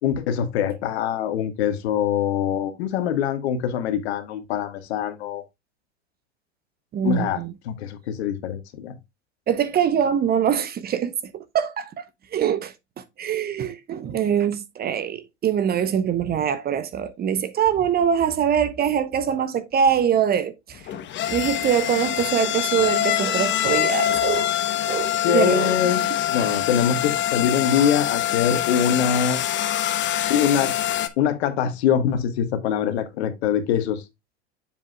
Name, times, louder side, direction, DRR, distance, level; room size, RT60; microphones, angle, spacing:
voice 1, 0.0-5.4 7.0-8.9 25.2-26.0 26.3-29.4 30.3-30.7 31.2-34.0, left 8 dB, 65° left, 1.5 m, -23 dB
voice 2, 6.9-7.5 9.5-12.0 12.3-12.7 13.2-20.8 21.3-24.5 24.9-25.9 26.4-26.5 27.8-27.9, right 8 dB, 25° right, 0.8 m, -23 dB
sound 1, 20.8-31.1, left 12 dB, 35° left, 1.0 m, -24 dB
7.3 x 7.3 x 2.2 m
hypercardioid pair, 95°, 34 cm